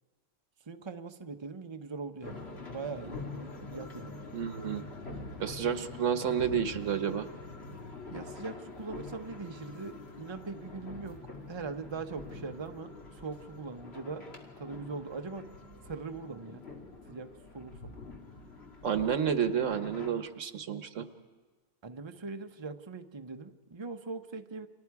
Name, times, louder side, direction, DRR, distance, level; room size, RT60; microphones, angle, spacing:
voice 1, 0.7-4.2 8.1-11.2 11.5-14.2 14.6-15.5 15.8-16.6 17.1-18.0 21.8-24.7, right 4 dB, 25° right, 6 dB, 0.8 m, -41 dB
sound 1, 2.2-20.1, left 3 dB, 55° left, 2.5 m, -45 dB
voice 2, 4.3-4.8 5.4-7.3 18.8-21.1, right 8 dB, 85° right, 9 dB, 1.4 m, -30 dB
30.0 x 25.0 x 4.8 m, 1.4 s
omnidirectional pair, 1.3 m